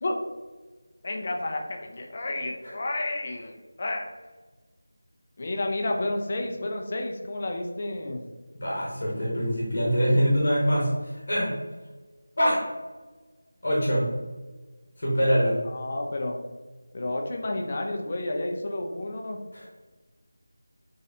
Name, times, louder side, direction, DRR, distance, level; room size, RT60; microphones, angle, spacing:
voice 1, 1.0-4.1 5.4-8.2 15.7-16.4 16.9-19.4, left 2 dB, 30° left, 2 dB, 0.4 m, -31 dB
voice 2, 8.6-11.5 12.4-12.6 13.6-14.0 15.0-15.6 19.5-19.7, equal, 50° left, -4 dB, 1.1 m, -24 dB
3.9 x 3.1 x 2.7 m, 1.3 s
figure-of-eight pair, 175°, 0 cm